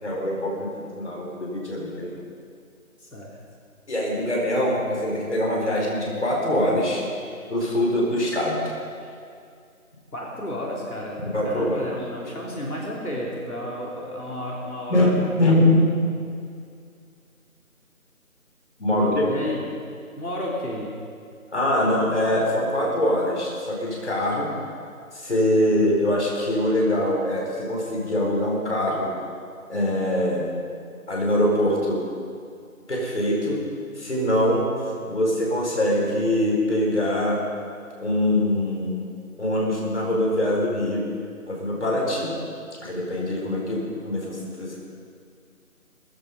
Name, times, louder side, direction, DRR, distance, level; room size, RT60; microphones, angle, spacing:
voice 1, 0.0-2.1 3.9-7.0 7.5-8.6 11.3-11.9 14.9-15.8 18.8-19.2 21.5-24.5 25.1-29.1 29.7-30.5 31.1-32.0 32.9-33.6 34.0-34.7 35.1-37.4 38.0-39.0 39.4-41.0 41.5-42.4 42.8-44.8, left 1 dB, 50° left, -3 dB, 4.8 m, -23 dB
voice 2, 3.0-3.4 7.3-7.4 9.0-9.1 10.1-15.2 18.9-19.6 20.2-20.9, left 1 dB, 80° left, -4 dB, 3.9 m, -32 dB
17.5 x 15.0 x 5.4 m, 2.3 s
figure-of-eight pair, 165°, 43 cm